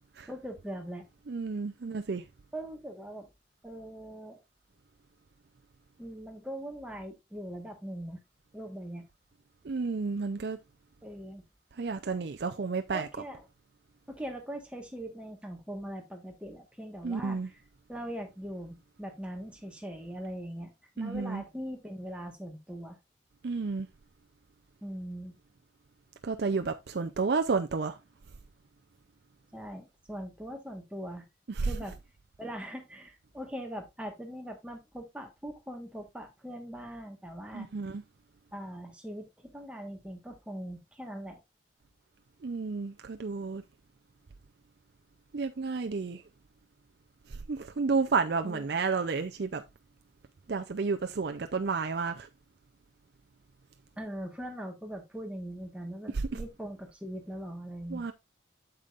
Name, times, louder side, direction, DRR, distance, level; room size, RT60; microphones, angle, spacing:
voice 1, 0.3-1.0 2.5-3.3 3.6-4.4 6.0-8.2 8.5-9.1 11.0-11.5 12.9-13.4 14.1-17.6 17.9-23.0 24.8-25.4 29.5-31.3 31.6-32.0 32.4-37.7 38.5-41.4 48.4-48.7 54.0-58.0, equal, 5° right, 1.3 m, -41 dB
voice 2, 1.3-2.2 9.6-10.6 11.8-13.1 17.0-17.5 21.0-21.4 23.4-23.9 26.2-28.0 31.5-31.7 37.5-38.0 42.4-43.6 45.3-46.2 47.3-49.6 50.5-52.3 56.1-56.4 57.9-58.1, right 4 dB, 60° right, 0.5 m, -31 dB
8.7 x 6.8 x 2.5 m
head